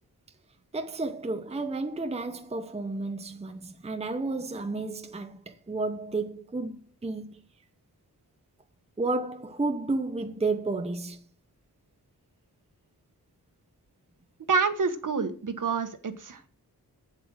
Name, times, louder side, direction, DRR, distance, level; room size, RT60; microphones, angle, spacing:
voice 1, 0.7-7.4 9.0-11.2, right 3 dB, 15° right, 0.7 m, -32 dB
voice 2, 14.5-16.5, right 5 dB, 55° right, 1.3 m, -27 dB
8.4 x 7.8 x 6.3 m
wide cardioid pair, 135°, 37 cm